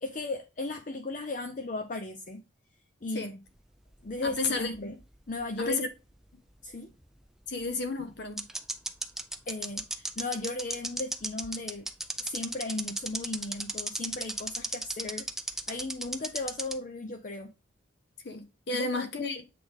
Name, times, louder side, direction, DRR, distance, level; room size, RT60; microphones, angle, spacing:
voice 1, 0.0-2.4 3.0-3.4 4.0-5.0 5.3-5.8 6.6-6.9 9.5-11.9 12.2-15.3 15.7-17.5 18.7-19.1, left 2 dB, 40° left, 0.6 m, -36 dB
sound 1, 3.9-5.4 5.7-5.8 7.6-7.7 8.4-16.8, right 1 dB, ahead, 0.4 m, -34 dB
voice 2, 4.2-4.7 5.6-5.9 7.5-8.4 18.2-19.4, left 3 dB, 60° left, 0.9 m, -32 dB
8.0 x 3.4 x 3.5 m
head